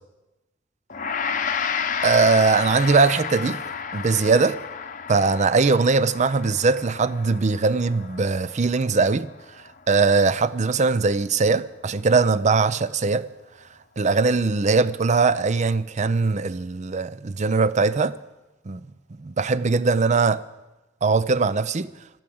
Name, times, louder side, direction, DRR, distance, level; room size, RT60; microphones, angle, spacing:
Gong, 0.9-10.3, left 6 dB, 45° left, 0.8 m, -32 dB
voice 1, 2.0-3.6 3.9-4.6 5.1-9.3 9.9-13.3 14.0-18.1 18.7-18.8 19.2-20.4 21.0-21.9, right 4 dB, 40° right, 0.5 m, -20 dB
12.5 x 12.5 x 7.8 m
head